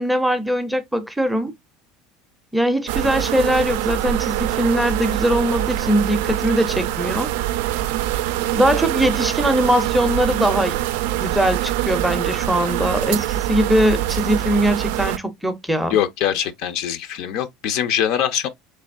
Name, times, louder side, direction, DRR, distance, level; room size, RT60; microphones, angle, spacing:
voice 1, 0.0-1.5 2.5-7.3 8.5-10.8 11.2-16.0, equal, ahead, 0.5 m, -21 dB
sound 1, 2.9-15.2, right 14 dB, 80° right, 0.3 m, -24 dB
voice 2, 15.9-18.5, left 10 dB, 60° left, 0.5 m, -22 dB
3.7 x 3.3 x 2.4 m
cardioid pair, 140°, 0 cm